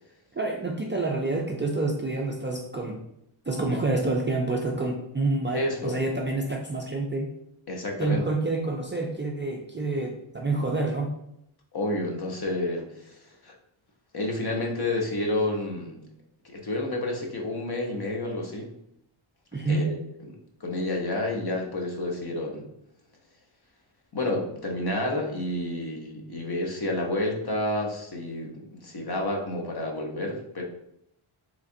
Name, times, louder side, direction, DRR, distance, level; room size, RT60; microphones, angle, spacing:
voice 1, 0.3-3.0 3.5-7.3 8.0-11.1 19.5-19.9, right 2 dB, 25° right, 0 dB, 0.3 m, -28 dB
voice 2, 5.5-6.0 7.7-8.2 11.7-13.5 14.1-16.1 16.4-18.7 19.7-20.0 20.3-22.7 24.1-30.6, left 1 dB, 50° left, 1 dB, 0.8 m, -30 dB
3.8 x 3.2 x 2.6 m, 0.77 s
wide cardioid pair, 100°, 50 cm